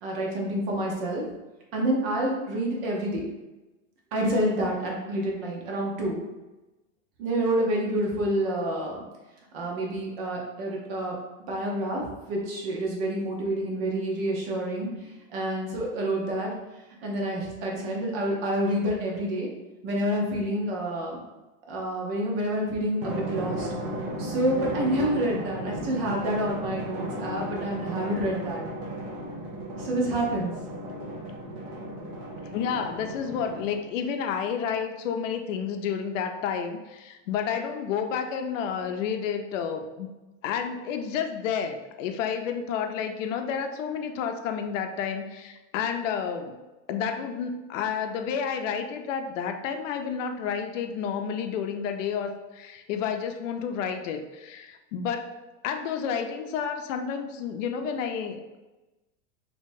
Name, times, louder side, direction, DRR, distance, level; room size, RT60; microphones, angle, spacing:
voice 1, 0.0-1.2 1.7-3.3 4.1-6.2 7.2-9.0 9.5-11.2 11.5-16.5 17.0-19.5 19.8-21.2 21.7-23.7 24.2-28.6 29.8-30.5, right 1 dB, 50° right, -1 dB, 0.9 m, -28 dB
Drum, 23.0-34.0, right 1 dB, 25° right, 0.4 m, -35 dB
voice 2, 32.5-40.1 40.4-46.6 46.9-55.3 55.6-58.6, left 7 dB, 80° left, 6 dB, 0.6 m, -30 dB
3.7 x 2.9 x 2.6 m, 1.1 s
supercardioid pair, 175°, 38 cm